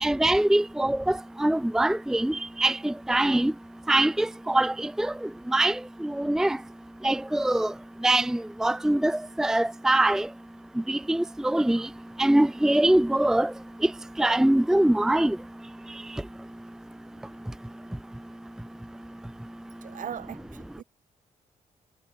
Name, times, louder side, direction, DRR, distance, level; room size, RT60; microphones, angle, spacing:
voice 1, 0.0-3.5 3.9-6.6 7.0-7.7 8.0-10.3 10.9-11.9 12.2-13.5 13.8-13.9 14.2-15.4, right 1 dB, 5° right, 0.6 m, -23 dB
voice 2, 19.8-20.8, right 9 dB, 65° right, 6.9 m, -39 dB
wide cardioid pair, 165°, 14 cm